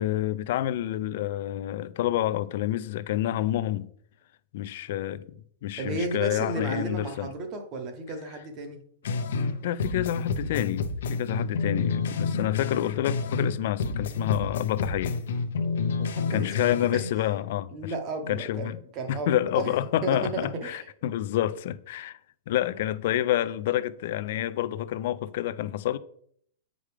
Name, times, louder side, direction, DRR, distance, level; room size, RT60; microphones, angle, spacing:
voice 1, 0.0-3.9 4.5-5.4 5.6-7.3 9.6-15.2 16.3-17.9 18.3-18.8 19.1-22.2 22.5-26.0, left 12 dB, 45° left, 0.4 m, -28 dB
voice 2, 5.8-8.8 15.6-16.5 16.9-17.1 17.7-19.7 20.0-20.9, right 2 dB, 25° right, 0.9 m, -34 dB
sound 1, 9.0-9.5 9.8-13.5 13.8-17.0, left 4 dB, 70° left, 0.7 m, -29 dB
8.5 x 5.0 x 3.3 m
supercardioid pair, 175°, 0 cm